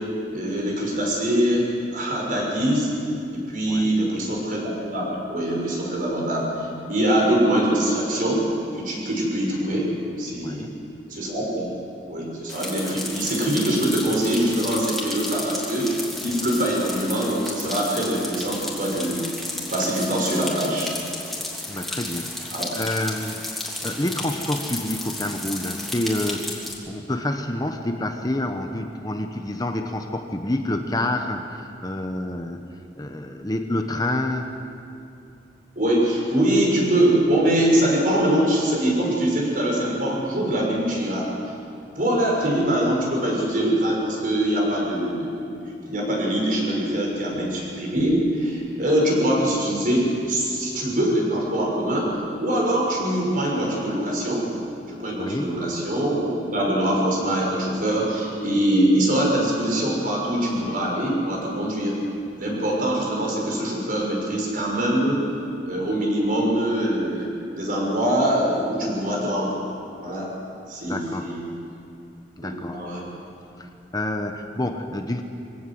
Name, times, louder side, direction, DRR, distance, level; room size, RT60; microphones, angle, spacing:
voice 1, 0.3-2.9 3.3-6.4 6.9-8.4 8.7-9.9 10.2-10.7 11.1-11.7 12.1-15.9 16.2-19.2 19.7-20.9 22.5-22.7 35.8-41.3 42.0-45.6 45.9-54.4 54.9-61.9 62.4-65.2 65.6-69.5 70.0-70.3 70.7-71.4 72.4-73.0, right 1 dB, 50° right, -2 dB, 6.4 m, -23 dB
voice 2, 10.4-10.8 21.7-22.4 22.7-26.6 26.9-32.7 33.0-34.6 55.2-55.6 70.9-71.4 72.4-72.8 73.6-75.2, left 1 dB, 20° left, 5 dB, 1.0 m, -28 dB
sound 1, 12.5-26.7, left 1 dB, ahead, 3.2 m, -33 dB
24.0 x 17.5 x 7.8 m, 2.6 s
head